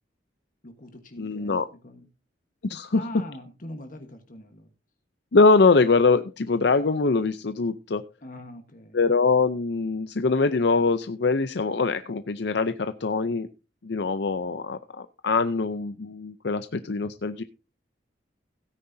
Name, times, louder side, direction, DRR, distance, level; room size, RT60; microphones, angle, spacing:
voice 1, 0.6-2.1 2.9-4.7 8.2-9.0, left 1 dB, 45° left, 6 dB, 1.3 m, -42 dB
voice 2, 1.2-1.7 2.6-3.0 5.3-8.0 8.9-13.5 13.8-17.4, left 4 dB, 60° left, 10 dB, 0.6 m, -23 dB
17.0 x 9.6 x 2.7 m, 0.28 s
head